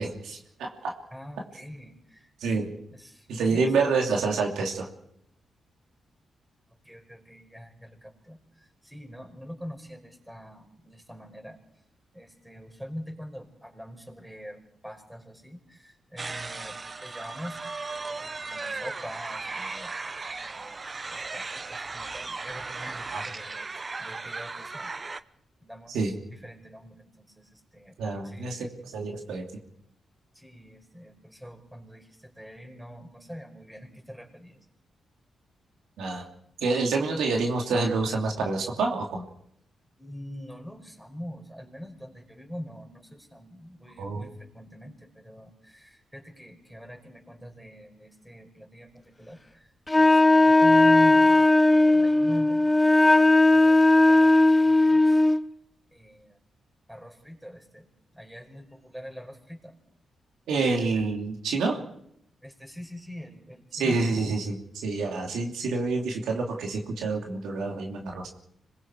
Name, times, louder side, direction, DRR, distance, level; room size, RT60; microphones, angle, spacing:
voice 1, 0.0-0.9 2.4-2.7 3.3-4.9 23.1-23.2 25.9-26.1 28.0-28.7 28.9-29.4 36.0-36.3 36.6-39.3 44.0-44.2 60.5-61.8 63.7-68.3, right 3 dB, 85° right, 1 dB, 2.8 m, -27 dB
voice 2, 1.1-4.2 6.8-11.6 12.1-17.6 18.2-19.9 20.2-20.8 21.1-24.9 25.6-26.0 26.3-28.0 28.2-28.7 30.3-34.6 40.0-55.2 55.9-56.4 56.9-59.8 62.4-64.0, equal, 5° right, 2 dB, 5.4 m, -43 dB
sound 1, 16.2-25.2, right 3 dB, 35° right, 0.8 m, -36 dB
Wind instrument woodwind instrument, 49.9-55.4, left 2 dB, 20° left, 0.7 m, -18 dB
26.0 x 21.5 x 4.8 m, 0.76 s
cardioid pair, 65°, 0 cm